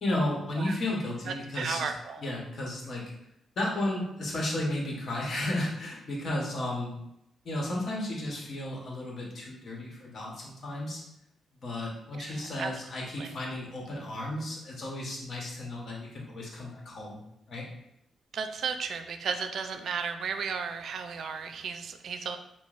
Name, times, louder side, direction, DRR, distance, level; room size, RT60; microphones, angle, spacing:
voice 1, 0.0-1.9 2.2-3.0 3.6-7.0 7.4-11.0 11.6-17.2 17.5-17.7, left 1 dB, 50° left, -3 dB, 1.0 m, -33 dB
voice 2, 1.5-2.2 12.1-12.7 13.2-13.4 18.3-22.4, right 6 dB, 65° right, 7 dB, 0.3 m, -34 dB
5.8 x 2.0 x 2.4 m, 0.81 s
cardioid pair, 125°, 0 cm